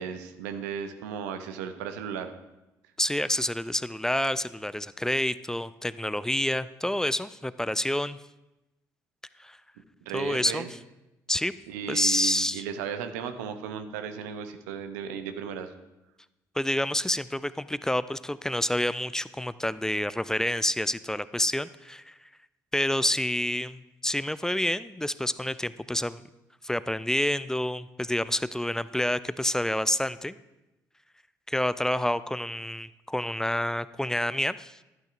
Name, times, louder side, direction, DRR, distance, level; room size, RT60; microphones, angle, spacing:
voice 1, 0.0-2.3 10.1-10.7 11.7-15.7, right 7 dB, 75° right, 8 dB, 0.6 m, -35 dB
voice 2, 3.0-8.2 9.4-9.6 10.1-10.8 11.3-11.5 11.9-12.6 16.6-22.1 22.7-26.2 26.6-30.4 31.5-34.8, left 1 dB, 5° left, 16 dB, 0.3 m, -28 dB
11.5 x 8.8 x 2.5 m, 0.97 s
hypercardioid pair, 50°, 9 cm